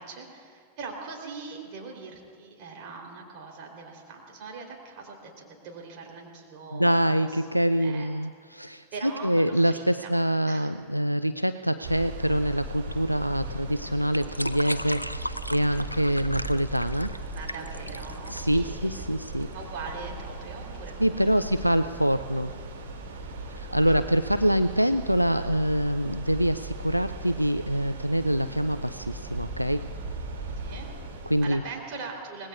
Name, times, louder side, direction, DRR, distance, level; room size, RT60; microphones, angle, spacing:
voice 1, 0.0-7.4 7.7-8.1 8.5-10.1 10.5-10.7 17.3-19.0 19.5-21.6 23.5-24.0 30.6-32.5, right 4 dB, 45° right, 1 dB, 3.5 m, -42 dB
voice 2, 6.7-17.1 18.3-19.5 21.0-22.5 23.6-29.9 31.3-31.6, equal, 90° right, 10 dB, 0.3 m, -25 dB
sound 1, 11.8-31.5, right 2 dB, 60° right, 2.6 m, -38 dB
sound 2, 12.6-19.6, equal, 90° left, 0.4 m, -37 dB
25.5 x 20.0 x 2.4 m, 2.2 s
figure-of-eight pair, 90°, 0 cm